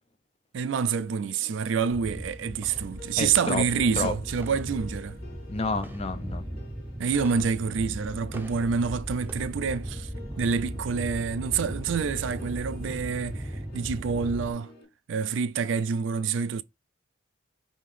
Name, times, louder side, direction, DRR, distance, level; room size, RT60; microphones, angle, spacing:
voice 1, 0.5-5.2 7.0-10.1 10.4-14.7 15.1-16.6, right 6 dB, 75° right, 0.4 m, -27 dB
sound 1, 0.7-14.8, left 3 dB, 50° left, 3.4 m, -51 dB
sound 2, 1.9-14.5, equal, 10° right, 0.6 m, -37 dB
voice 2, 3.2-3.6 4.0-4.1 5.5-6.4, left 3 dB, 30° left, 0.5 m, -29 dB
5.5 x 2.9 x 3.2 m
head